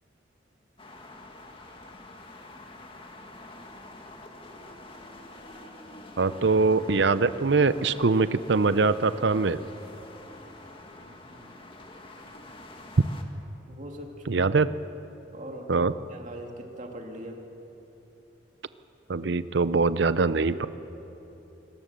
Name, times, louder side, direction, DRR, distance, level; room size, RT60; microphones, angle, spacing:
sound 1, 0.8-13.2, left 2 dB, 30° left, 1.8 m, -46 dB
voice 1, 6.2-9.6 14.3-14.7 15.7-15.9 19.1-20.7, right 4 dB, 65° right, 14 dB, 0.6 m, -23 dB
voice 2, 11.0-11.7 13.7-14.4 15.3-17.4, right 1 dB, 40° right, 2 dB, 2.4 m, -42 dB
24.5 x 19.0 x 6.8 m, 3.0 s
head